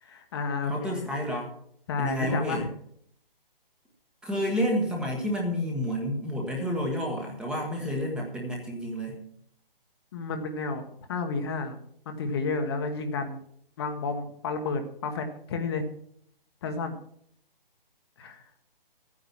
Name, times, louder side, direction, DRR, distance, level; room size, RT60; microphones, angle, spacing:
voice 1, 0.0-0.9 1.9-2.7 10.1-10.8 11.1-11.8 12.0-13.4 13.8-15.9 16.6-17.0 18.2-18.4, left 4 dB, 25° left, 5 dB, 1.2 m, -31 dB
voice 2, 0.7-1.5 2.0-2.6 4.2-9.2, equal, 5° right, 0 dB, 1.3 m, -29 dB
13.5 x 9.6 x 5.8 m, 0.66 s
hypercardioid pair, 160°, 29 cm